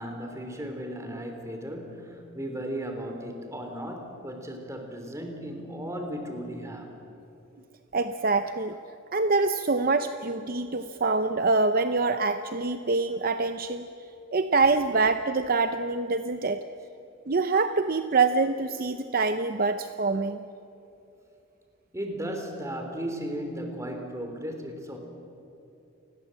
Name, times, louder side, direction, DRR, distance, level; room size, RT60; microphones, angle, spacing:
voice 1, 0.0-6.9 21.9-25.0, equal, 15° right, 4 dB, 3.3 m, -35 dB
voice 2, 7.9-8.8 9.1-13.9 14.3-16.6 17.3-20.4, right 3 dB, 45° right, 9 dB, 0.7 m, -25 dB
29.0 x 20.5 x 7.7 m, 2.8 s
head